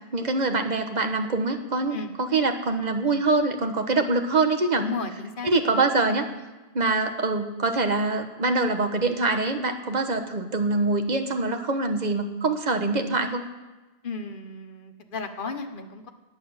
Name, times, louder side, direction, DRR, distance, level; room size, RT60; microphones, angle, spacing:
voice 1, 0.1-4.8 5.4-6.3 6.7-13.4, right 3 dB, 45° right, 6 dB, 1.4 m, -24 dB
voice 2, 4.8-5.5 14.0-16.1, left 4 dB, 55° left, 7 dB, 1.4 m, -34 dB
18.5 x 9.3 x 7.2 m, 1.1 s
omnidirectional pair, 1.1 m